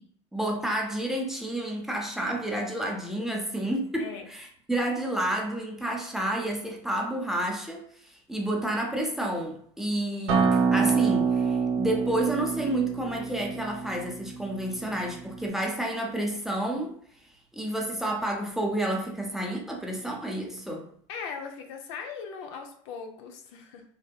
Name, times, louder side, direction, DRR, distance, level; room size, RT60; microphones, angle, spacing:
voice 1, 0.3-17.0 17.5-20.8, right 1 dB, ahead, 0 dB, 0.6 m, -30 dB
voice 2, 3.2-3.5 4.0-4.3 21.1-23.8, left 6 dB, 75° left, 4 dB, 0.5 m, -39 dB
Acoustic guitar, 10.3-15.5, right 5 dB, 85° right, 0.5 m, -27 dB
2.6 x 2.1 x 2.2 m, 0.62 s
hypercardioid pair, 80°, 15 cm